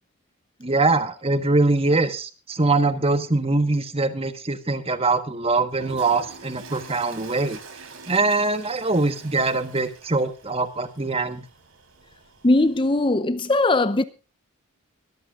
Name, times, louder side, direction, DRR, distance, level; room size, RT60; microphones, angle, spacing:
voice 1, 0.6-7.6 8.1-11.4, right 3 dB, 25° right, 1.3 m, -23 dB
Toilet flush, 5.7-13.2, right 4 dB, 70° right, 3.8 m, -45 dB
voice 2, 12.4-14.0, left 2 dB, 25° left, 0.6 m, -20 dB
23.0 x 14.0 x 2.5 m
head